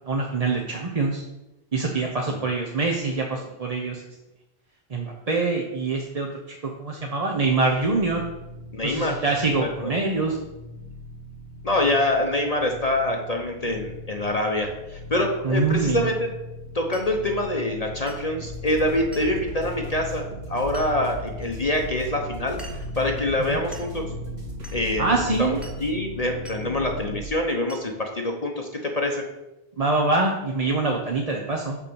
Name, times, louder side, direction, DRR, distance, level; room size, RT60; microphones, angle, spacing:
voice 1, 0.1-1.2 1.7-4.0 4.9-6.3 6.6-8.2 8.8-10.4 15.4-16.1 23.5-23.6 25.0-25.6 29.8-31.8, right 3 dB, 40° right, 0 dB, 1.0 m, -24 dB
sound 1, 7.5-27.2, left 1 dB, 75° left, 1.3 m, -38 dB
voice 2, 8.7-9.2 9.6-9.9 11.6-16.3 16.7-22.6 22.9-24.1 24.7-29.2, left 1 dB, 40° left, 2 dB, 1.0 m, -25 dB
Glass, 16.9-17.2 18.1-18.3 19.1-19.4 20.7-20.9 21.4-21.5 22.6-22.9 23.7-24.0 24.6-24.8 25.6-25.9 26.5-26.6 27.7-27.9, right 1 dB, ahead, 1.4 m, -44 dB
sound 2, 18.4-25.9, right 1 dB, 85° right, 2.0 m, -40 dB
7.1 x 5.7 x 6.9 m, 0.97 s
omnidirectional pair, 1.0 m